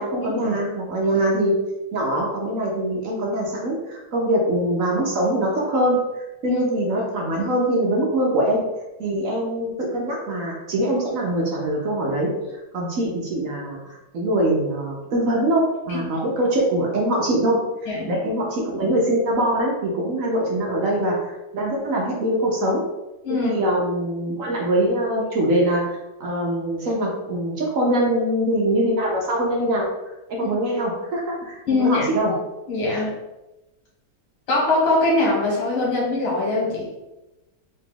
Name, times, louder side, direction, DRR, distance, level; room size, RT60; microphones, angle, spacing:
voice 1, 0.0-1.5 1.9-8.6 9.0-12.3 12.7-22.8 23.4-25.8 26.2-29.9 30.3-32.3, right 1 dB, 65° right, -2 dB, 0.8 m, -23 dB
voice 2, 31.7-32.0 32.7-33.1 34.5-36.9, left 2 dB, 90° left, -4 dB, 2.1 m, -22 dB
3.9 x 2.9 x 3.7 m, 1.0 s
omnidirectional pair, 2.1 m